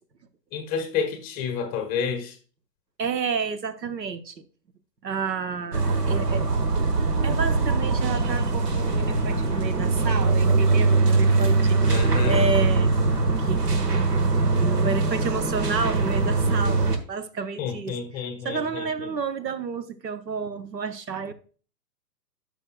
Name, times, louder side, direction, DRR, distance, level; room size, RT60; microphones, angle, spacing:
voice 1, 0.5-2.4 11.9-12.5 17.6-19.1, left 6 dB, 20° left, 0.9 m, -30 dB
voice 2, 3.0-4.4 5.0-6.5 7.2-13.1 13.4-14.3 14.6-21.3, right 5 dB, 85° right, 1.0 m, -31 dB
sound 1, 5.7-17.0, right 3 dB, 70° right, 1.4 m, -22 dB
12.0 x 5.4 x 2.2 m
figure-of-eight pair, 125°, 49 cm